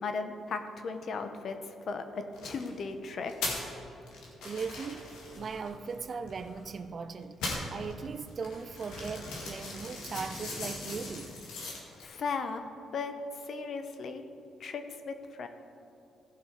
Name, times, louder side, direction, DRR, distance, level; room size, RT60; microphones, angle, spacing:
voice 1, 0.0-1.6 1.9-2.0 2.4-3.3 12.0-12.6 12.9-13.2 13.5-14.2 14.6-15.5, left 4 dB, 55° left, 0.9 m, -36 dB
sound 1, 2.3-2.7 3.3-3.7 4.1-6.8 7.2-12.0, left 2 dB, 85° left, 2.1 m, -39 dB
voice 2, 4.4-11.4, right 5 dB, 45° right, 0.5 m, -39 dB
15.5 x 5.5 x 4.8 m
cardioid pair, 90°, 0 cm